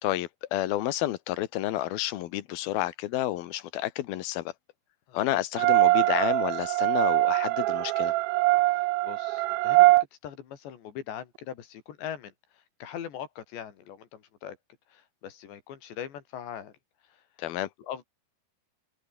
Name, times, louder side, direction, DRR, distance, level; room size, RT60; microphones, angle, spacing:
voice 1, 0.0-4.5 5.1-8.1 17.4-17.7, left 14 dB, 70° left, 2.8 m, -30 dB
voice 2, 5.1-5.4 8.7-10.0 10.2-14.6 14.9-16.7 17.0-17.2 17.8-18.0, left 9 dB, 90° left, 5.0 m, -41 dB
sound 1, 5.5-10.0, right 20 dB, 85° right, 2.0 m, -22 dB
open air
omnidirectional pair, 4.9 m